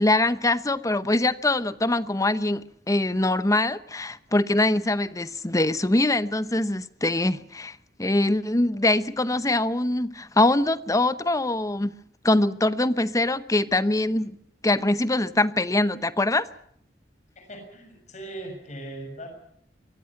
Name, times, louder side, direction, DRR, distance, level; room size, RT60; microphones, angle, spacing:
voice 1, 0.0-11.9 12.2-14.3 14.6-16.5, left 2 dB, 20° left, 0.9 m, -23 dB
voice 2, 17.4-19.3, right 1 dB, 40° left, 6.6 m, -39 dB
24.5 x 15.0 x 9.5 m
head